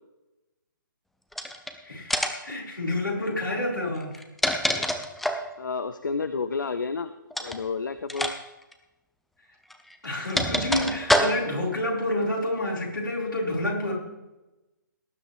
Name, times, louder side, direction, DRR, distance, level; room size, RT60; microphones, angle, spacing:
sound 1, 1.3-1.7 2.1-2.5 4.0-5.5 7.3-7.6 8.1-8.3 8.6-8.7 9.7-11.6, equal, ahead, 0.7 m, -26 dB
voice 1, 1.8-4.2 10.0-13.9, left 1 dB, 85° left, -3 dB, 4.8 m, -29 dB
voice 2, 5.6-7.1 7.4-8.4, left 4 dB, 65° left, 11 dB, 0.6 m, -30 dB
18.5 x 10.0 x 3.4 m, 1.0 s
figure-of-eight pair, 135°, 11 cm